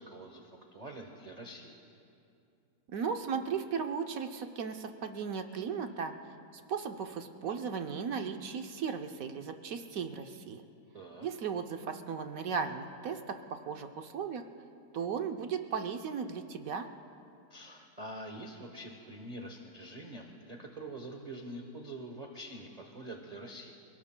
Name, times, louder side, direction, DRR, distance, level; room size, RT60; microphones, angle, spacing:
voice 1, 0.0-1.8 10.9-11.3 17.5-23.7, right 1 dB, 30° right, 2 dB, 0.9 m, -45 dB
voice 2, 2.9-6.1 6.5-10.6 11.2-14.4 14.9-16.9, right 6 dB, 65° right, 6 dB, 1.0 m, -36 dB
29.0 x 18.0 x 2.2 m, 2.6 s
omnidirectional pair, 1.8 m